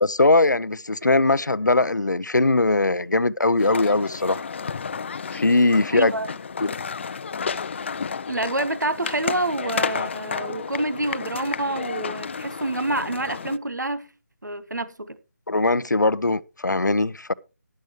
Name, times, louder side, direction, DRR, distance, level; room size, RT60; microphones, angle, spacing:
voice 1, 0.0-4.4 5.3-6.1 6.6-6.7 15.5-17.3, left 2 dB, 85° left, 0.6 m, -20 dB
sound 1, 3.6-13.6, left 5 dB, 40° left, 0.5 m, -31 dB
voice 2, 5.9-6.3 8.3-14.1 14.4-15.2, right 2 dB, 85° right, 1.1 m, -27 dB
12.0 x 11.0 x 3.1 m
figure-of-eight pair, 155°, 9 cm